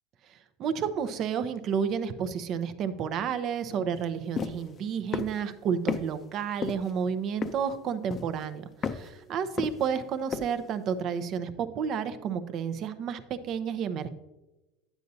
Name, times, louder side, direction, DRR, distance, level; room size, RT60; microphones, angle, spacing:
voice 1, 0.6-14.1, right 7 dB, 45° right, 11 dB, 0.7 m, -31 dB
sound 1, 4.4-4.6 5.1-5.4 5.9-6.0 6.6-6.9 7.4-7.7 8.1-8.4 8.8-9.1 9.6-10.0 10.3-10.5, left 6 dB, 30° left, 0.6 m, -31 dB
9.3 x 8.1 x 2.7 m, 1.0 s
supercardioid pair, 120°, 0 cm